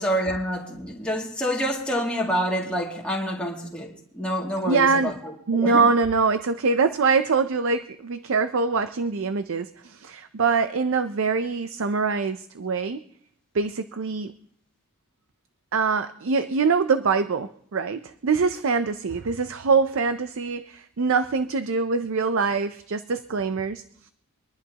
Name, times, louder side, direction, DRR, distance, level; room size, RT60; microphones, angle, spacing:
voice 1, 0.0-5.2 5.5-5.8, equal, 5° left, -3 dB, 2.3 m, -27 dB
voice 2, 4.6-5.1 5.5-13.0 13.5-14.3 15.7-23.8, right 4 dB, 65° right, 10 dB, 0.5 m, -24 dB
25.0 x 11.0 x 2.9 m, 0.67 s
head